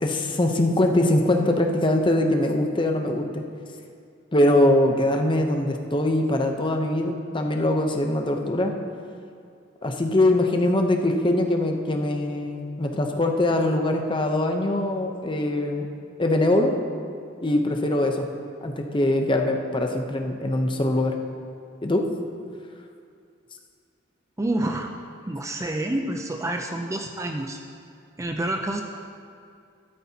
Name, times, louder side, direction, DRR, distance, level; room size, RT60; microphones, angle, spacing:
voice 1, 0.0-3.4 4.3-8.7 9.8-15.9 16.2-16.7 17.4-18.3 18.6-21.1 21.8-22.1, left 1 dB, 25° left, 3 dB, 0.7 m, -22 dB
voice 2, 24.4-25.0 25.3-27.6 28.2-28.8, right 1 dB, 15° right, 3 dB, 0.4 m, -28 dB
13.5 x 12.0 x 2.8 m, 2.4 s
head